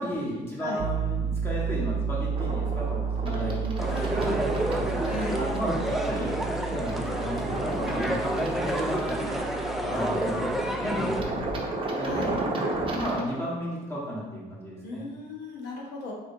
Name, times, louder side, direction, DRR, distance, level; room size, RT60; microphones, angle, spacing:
voice 1, 0.0-4.5 5.2-9.4 9.8-11.5 12.0-12.5 12.9-15.0, equal, 15° left, -6 dB, 1.4 m, -34 dB
Piano, 0.8-11.6, right 6 dB, 80° right, 0.4 m, -33 dB
sound 1, 2.3-13.2, right 2 dB, 30° right, 0.7 m, -34 dB
voice 2, 3.3-3.9 5.0-5.4 8.0-8.4 9.8-10.4 12.0-12.3 14.8-16.1, left 2 dB, 80° left, -2 dB, 1.0 m, -37 dB
sound 2, 3.8-11.2, equal, ahead, 0.4 m, -30 dB
4.2 x 3.5 x 2.7 m, 1.2 s
cardioid pair, 110°, 17 cm